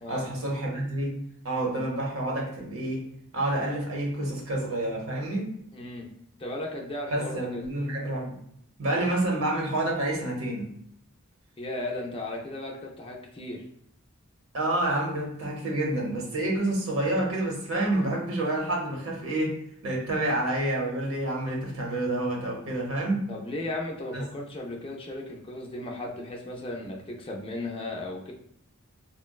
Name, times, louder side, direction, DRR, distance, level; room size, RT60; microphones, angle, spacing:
voice 1, 0.1-3.0 3.3-5.5 7.1-8.3 8.8-10.7 14.5-19.6 19.8-23.3 24.1-24.2, right 1 dB, 70° right, -1 dB, 0.8 m, -28 dB
voice 2, 5.7-6.1 6.4-7.7 11.6-13.6 23.3-28.3, left 1 dB, 25° left, -1 dB, 0.4 m, -36 dB
3.7 x 2.1 x 2.2 m, 0.70 s
head